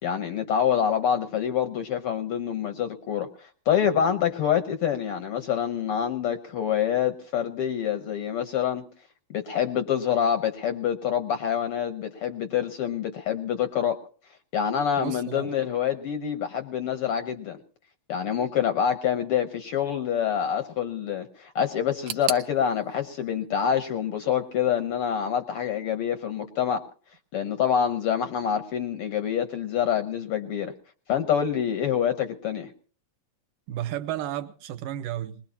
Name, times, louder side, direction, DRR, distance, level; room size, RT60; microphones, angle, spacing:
voice 1, 0.0-8.8 9.3-14.0 14.5-17.6 18.1-26.8 27.3-30.7 31.1-32.7, left 8 dB, 75° left, 1.3 m, -26 dB
voice 2, 15.0-15.5 33.7-35.4, right 12 dB, 85° right, 2.6 m, -32 dB
sound 1, 22.1-24.9 25.2-26.0 26.3-26.4 27.2-27.3, right 10 dB, 65° right, 1.7 m, -39 dB
22.0 x 20.5 x 2.9 m
omnidirectional pair, 3.9 m